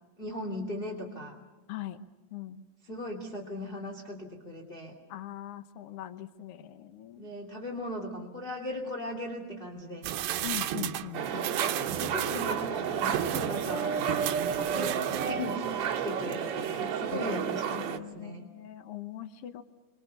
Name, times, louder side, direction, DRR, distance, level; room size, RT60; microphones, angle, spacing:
voice 1, 0.2-1.4 2.8-4.9 7.2-10.1 12.0-14.2 14.7-18.5, left 1 dB, 15° left, 0 dB, 2.6 m, -38 dB
voice 2, 1.7-2.0 2.3-2.6 5.1-7.3 10.4-11.6 17.1-17.4 17.8-19.6, left 13 dB, 70° left, 10 dB, 1.4 m, -41 dB
sound 1, 10.0-15.7 16.1-16.2, right 12 dB, 80° right, 2.7 m, -34 dB
sound 2, 11.1-18.0, right 7 dB, 55° right, 2.9 m, -31 dB
29.5 x 25.0 x 6.9 m, 1.2 s
omnidirectional pair, 4.1 m